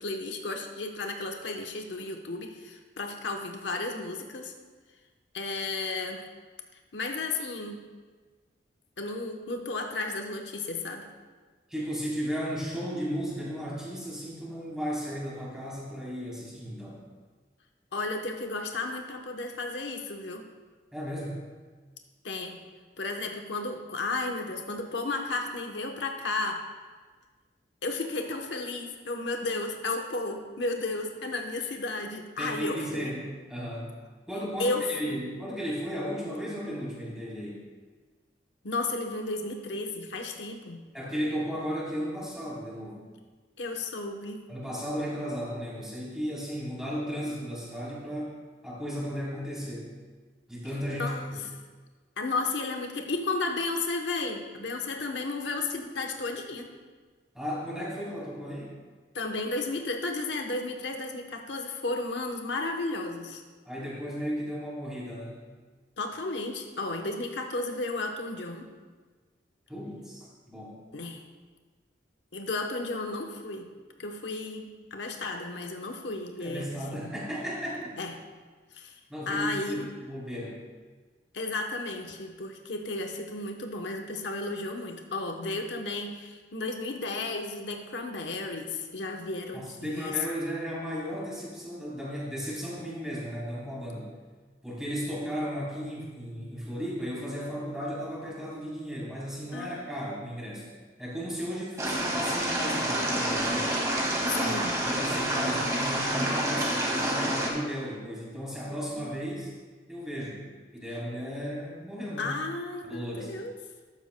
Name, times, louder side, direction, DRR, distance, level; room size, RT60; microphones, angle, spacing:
voice 1, 0.0-4.5 5.3-6.2 6.9-7.9 9.0-11.1 17.9-20.4 22.2-22.6 23.0-26.6 27.8-33.1 34.6-35.2 38.6-40.8 43.6-44.4 51.0-51.3 52.2-56.7 59.1-63.4 66.0-68.7 70.9-71.2 72.3-73.7 74.0-77.1 78.0-78.1 78.7-79.0 79.3-79.9 81.3-90.1 99.5-99.9 104.3-104.7 108.9-109.1 112.2-113.5, left 2 dB, 90° left, 3 dB, 1.0 m, -33 dB
voice 2, 11.7-17.0 20.9-21.4 32.4-33.9 34.3-37.6 40.9-43.0 44.5-48.4 48.6-49.9 50.5-51.4 57.3-58.7 63.6-65.4 69.7-70.8 76.4-78.0 79.1-80.6 89.5-94.1 94.6-100.7 101.0-103.7 104.3-109.5 109.9-110.4 110.7-112.3 112.8-113.3, equal, 5° right, -7 dB, 3.5 m, -35 dB
sound 1, 101.8-107.5, right 1 dB, 20° right, 2.0 m, -28 dB
13.5 x 11.5 x 2.2 m, 1.4 s
head